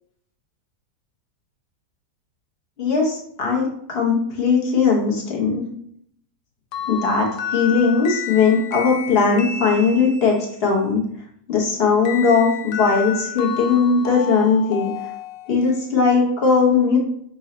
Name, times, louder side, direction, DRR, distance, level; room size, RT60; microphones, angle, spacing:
voice 1, 2.8-5.6 6.9-11.0 11.5-14.9 15.5-17.0, left 5 dB, 45° left, -1 dB, 1.0 m, -19 dB
sound 1, 6.7-10.5 12.0-15.8, left 8 dB, 75° left, 1.2 m, -31 dB
4.0 x 2.7 x 4.0 m, 0.67 s
omnidirectional pair, 1.9 m